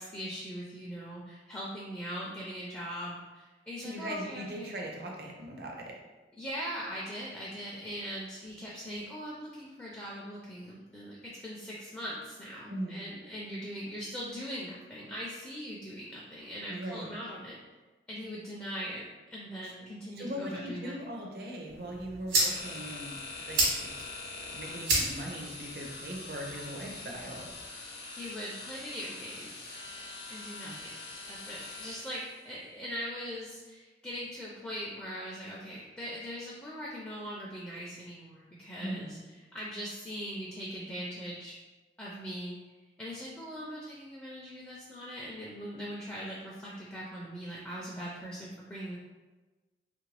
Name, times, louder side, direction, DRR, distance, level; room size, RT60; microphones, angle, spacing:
voice 1, 0.0-4.8 6.4-17.6 18.1-19.0 19.3-21.1 28.2-29.8 30.3-31.0 31.3-39.2 39.5-41.6 42.0-42.6 43.0-49.0, equal, 10° left, -6 dB, 0.4 m, -41 dB
voice 2, 3.8-5.9 12.7-13.0 16.7-17.1 20.2-23.2 23.5-23.9 24.5-27.5 30.6-30.9 38.8-39.1, right 1 dB, 55° right, 0 dB, 0.6 m, -40 dB
sound 1, 21.7-27.7, right 1 dB, 70° right, 1.1 m, -34 dB
sound 2, 22.3-32.4, left 3 dB, 65° left, 0.8 m, -44 dB
3.0 x 2.5 x 3.2 m, 1.2 s
head